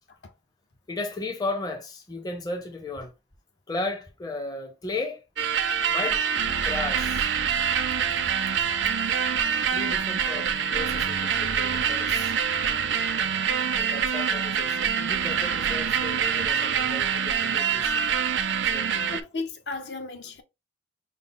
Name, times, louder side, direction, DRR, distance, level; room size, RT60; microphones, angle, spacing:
voice 1, 0.9-3.1 3.7-5.2 5.9-6.2 6.6-7.3 9.7-12.4 13.8-17.9 18.6-19.1, left 2 dB, 20° left, 0.6 m, -35 dB
sound 1, 5.4-19.2, right 7 dB, 80° right, 0.5 m, -25 dB
voice 2, 19.1-20.4, left 3 dB, 70° left, 0.8 m, -35 dB
5.3 x 2.0 x 3.6 m
head